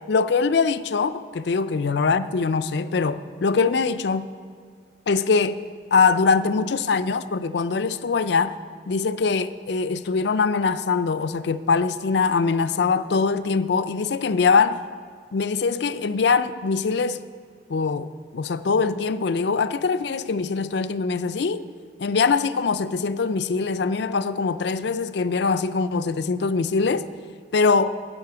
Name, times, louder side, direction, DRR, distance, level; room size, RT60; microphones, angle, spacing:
voice 1, 0.1-4.3 5.1-5.6 5.9-8.6 8.9-14.8 15.3-17.2 17.7-21.6 22.0-27.1 27.5-28.0, left 4 dB, 60° left, 0.4 m, -22 dB
11.5 x 8.9 x 6.8 m
head